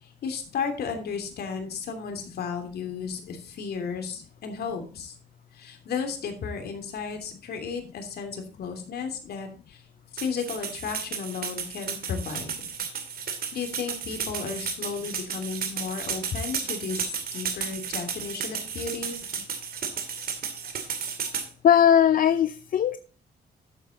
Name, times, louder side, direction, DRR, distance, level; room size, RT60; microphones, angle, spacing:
voice 1, 0.0-5.1 5.5-9.8 10.1-12.5 13.5-19.2, left 5 dB, 70° left, 2.9 m, -34 dB
sound 1, 10.2-21.5, right 6 dB, 65° right, 2.5 m, -33 dB
voice 2, 21.6-23.0, left 9 dB, 55° left, 0.6 m, -19 dB
12.0 x 7.4 x 4.0 m
cardioid pair, 90°, 17 cm